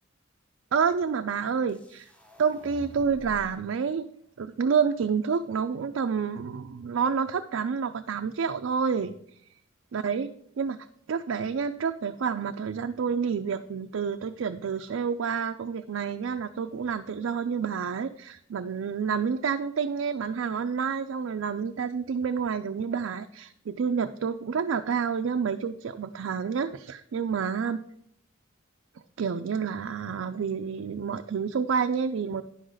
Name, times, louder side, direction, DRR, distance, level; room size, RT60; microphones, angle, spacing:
voice 1, 0.7-2.1 2.4-4.1 4.4-9.2 9.9-27.8 29.2-32.4, right 6 dB, 80° right, 6 dB, 0.4 m, -29 dB
sound 1, 1.7-3.6, equal, 5° left, 0.8 m, -48 dB
10.5 x 3.9 x 6.4 m, 0.71 s
head